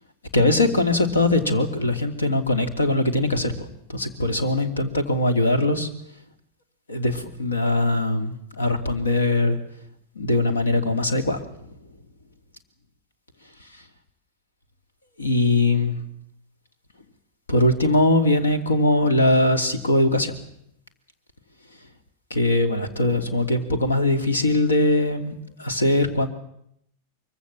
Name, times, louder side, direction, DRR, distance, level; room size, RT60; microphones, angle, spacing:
voice 1, 0.3-5.9 6.9-9.6 10.1-11.4 15.2-16.0 17.5-20.3 22.3-26.3, left 2 dB, 75° left, 9 dB, 2.9 m, -21 dB
24.0 x 23.5 x 7.4 m, 0.73 s
figure-of-eight pair, 90°, 0 cm